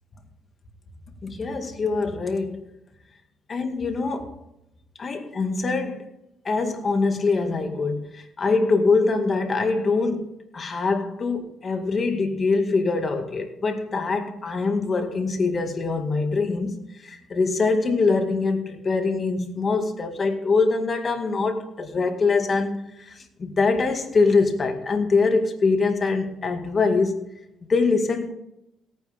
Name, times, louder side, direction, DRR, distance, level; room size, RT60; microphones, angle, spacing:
voice 1, 1.2-2.6 3.5-4.4 5.0-6.1 6.4-27.3 27.7-28.3, left 4 dB, 40° left, 2.0 m, -23 dB
17.5 x 9.4 x 3.6 m
cardioid pair, 90°, 0 cm